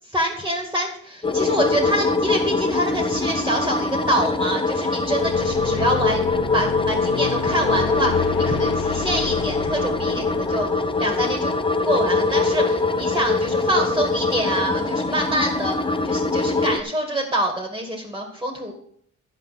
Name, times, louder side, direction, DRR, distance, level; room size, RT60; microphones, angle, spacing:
voice 1, 0.1-6.2 6.5-11.5 11.8-18.7, right 1 dB, 10° right, 2 dB, 2.3 m, -26 dB
sound 1, 1.2-16.8, left 3 dB, 15° left, 0.8 m, -23 dB
sound 2, 5.2-11.9, left 11 dB, 60° left, 0.7 m, -32 dB
10.5 x 5.4 x 7.7 m, 0.64 s
cardioid pair, 90°, 30 cm